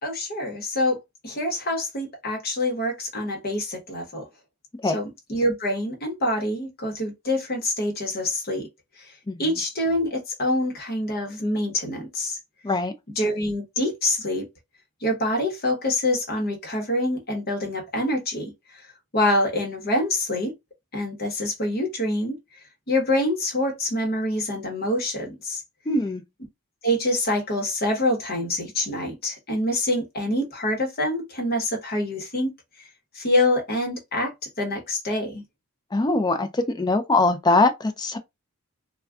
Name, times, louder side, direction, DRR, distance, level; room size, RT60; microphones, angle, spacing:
voice 1, 0.0-4.3 4.8-8.7 9.0-9.1 9.4-12.4 13.2-14.5 15.0-20.5 20.9-22.4 22.9-25.6 26.8-32.5 32.8-32.9 33.1-35.4, left 1 dB, 45° left, 1.0 m, -26 dB
voice 2, 25.9-26.2 35.9-38.2, left 2 dB, 20° left, 0.4 m, -22 dB
2.3 x 2.2 x 3.5 m
head